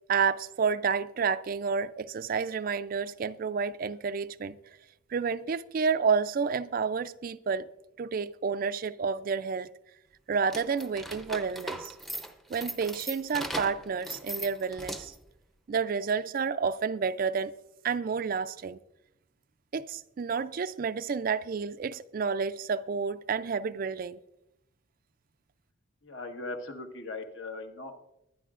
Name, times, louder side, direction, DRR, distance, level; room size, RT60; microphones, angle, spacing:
voice 1, 0.1-4.6 5.1-7.7 8.0-9.7 10.3-12.0 12.5-15.1 15.7-17.5 17.8-18.8 19.7-24.2, right 5 dB, 45° right, 0.3 m, -30 dB
sound 1, 10.4-15.3, right 1 dB, ahead, 0.6 m, -39 dB
voice 2, 26.0-28.0, left 2 dB, 65° left, 1.3 m, -39 dB
22.0 x 9.9 x 2.5 m
head